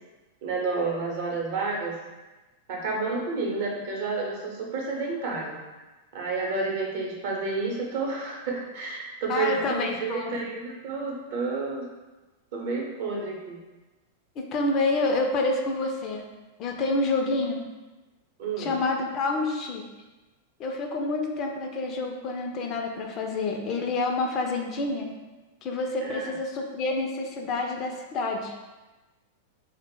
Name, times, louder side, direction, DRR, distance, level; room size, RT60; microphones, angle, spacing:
voice 1, 0.4-2.0 2.7-5.6 6.1-11.9 12.5-13.6 18.4-18.8 26.0-26.3, right 3 dB, 55° right, -2 dB, 0.7 m, -30 dB
voice 2, 9.3-10.4 14.4-16.2 16.6-17.7 18.6-19.9 20.6-25.1 25.6-28.5, left 2 dB, 40° left, 2 dB, 0.4 m, -28 dB
2.1 x 2.0 x 3.7 m, 1.2 s
hypercardioid pair, 95°, 0 cm